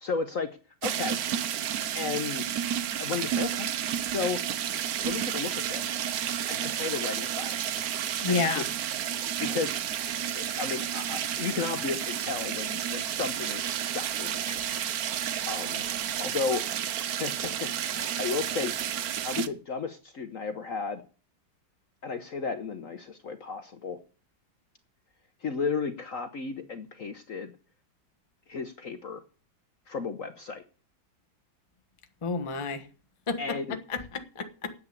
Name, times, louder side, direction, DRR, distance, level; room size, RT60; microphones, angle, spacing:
voice 1, 0.0-0.5 0.8-1.2 1.9-2.5 3.0-3.7 4.0-4.4 5.0-6.0 6.5-7.7 8.3-8.6 9.4-9.8 10.4-14.9 15.5-15.8 16.2-16.6 17.2-18.7 19.2-21.0 22.0-24.0 25.4-27.5 28.5-29.2 29.9-30.6 33.4-33.8, left 5 dB, 55° left, 1.0 m, -34 dB
the forever flush, 0.8-19.5, right 10 dB, 65° right, 1.0 m, -31 dB
voice 2, 8.2-8.7 32.2-32.9 33.3-34.7, left 4 dB, 25° left, 0.8 m, -30 dB
9.8 x 8.2 x 8.3 m
omnidirectional pair, 2.2 m